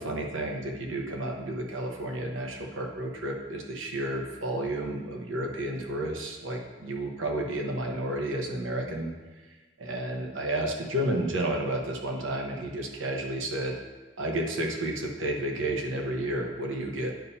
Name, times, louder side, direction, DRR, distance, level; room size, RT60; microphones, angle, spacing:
voice 1, 0.0-9.1 9.8-13.8 14.2-17.1, right 1 dB, 80° right, 2 dB, 1.0 m, -31 dB
9.1 x 5.5 x 2.7 m, 1.3 s
head